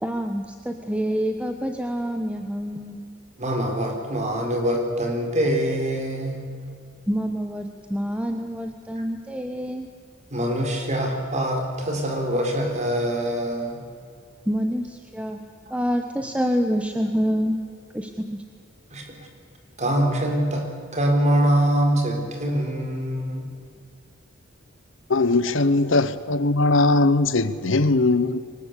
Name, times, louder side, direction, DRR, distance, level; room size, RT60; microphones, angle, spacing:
voice 1, 0.0-3.1 7.1-9.9 14.5-15.4 15.7-17.6 17.9-18.4, equal, 5° right, 5 dB, 1.1 m, -27 dB
voice 2, 3.4-6.4 10.3-13.8 18.9-19.3 19.8-20.7 20.9-23.5, right 1 dB, 35° right, 3 dB, 4.4 m, -24 dB
voice 3, 25.1-28.4, left 2 dB, 75° left, 14 dB, 1.1 m, -20 dB
23.5 x 19.5 x 8.4 m, 2.3 s
head